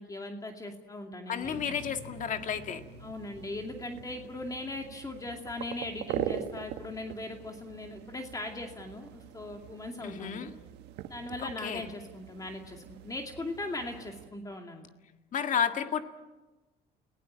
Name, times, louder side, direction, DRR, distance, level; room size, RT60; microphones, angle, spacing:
voice 1, 0.0-1.8 3.0-10.5 11.1-14.9, left 2 dB, 20° left, 3 dB, 2.4 m, -39 dB
voice 2, 1.3-2.8 10.0-10.5 11.6-11.8 15.3-16.0, left 7 dB, 50° left, 7 dB, 1.9 m, -31 dB
sound 1, 1.4-10.8, left 1 dB, 10° right, 6.3 m, -53 dB
sound 2, 1.4-14.3, right 11 dB, 85° right, 1.4 m, -43 dB
30.0 x 18.0 x 8.8 m, 1.2 s
cardioid pair, 110°, 17 cm